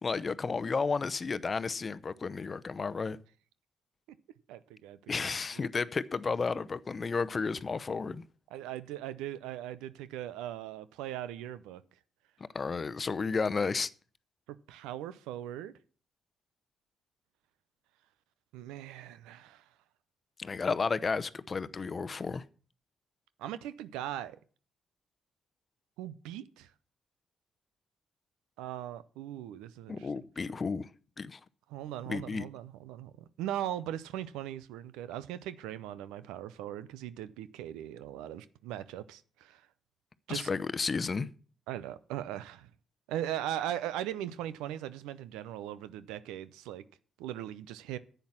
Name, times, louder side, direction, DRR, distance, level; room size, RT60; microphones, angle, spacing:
voice 1, 0.0-3.2 5.1-8.2 12.5-13.9 20.4-22.4 29.9-30.9 31.2-31.4 32.1-32.5 40.3-41.3, left 4 dB, 40° left, 0.7 m, -32 dB
voice 2, 4.5-5.1 8.5-11.8 14.7-15.7 18.5-19.6 23.4-24.4 26.0-26.7 28.6-30.1 31.7-33.1 33.4-39.6 40.3-40.5 41.7-42.7 43.1-46.8 47.2-48.0, right 12 dB, 85° right, 0.6 m, -39 dB
10.5 x 8.1 x 7.3 m
hypercardioid pair, 50°, 0 cm